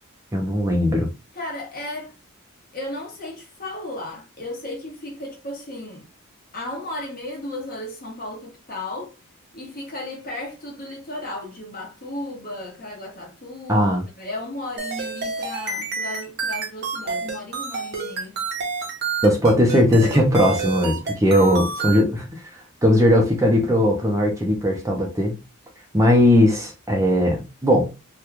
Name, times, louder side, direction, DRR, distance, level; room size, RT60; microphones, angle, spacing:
voice 1, 0.3-1.1 13.7-14.0 19.2-22.4 22.8-25.4 25.9-27.9, equal, 15° right, 0.6 m, -18 dB
voice 2, 1.3-2.1 2.7-6.0 6.5-9.1 9.5-13.9 14.1-18.4 21.3-21.5, left 1 dB, 40° left, 1.1 m, -34 dB
sound 1, 14.8-22.0, right 4 dB, 50° right, 0.9 m, -29 dB
2.9 x 2.3 x 3.4 m
head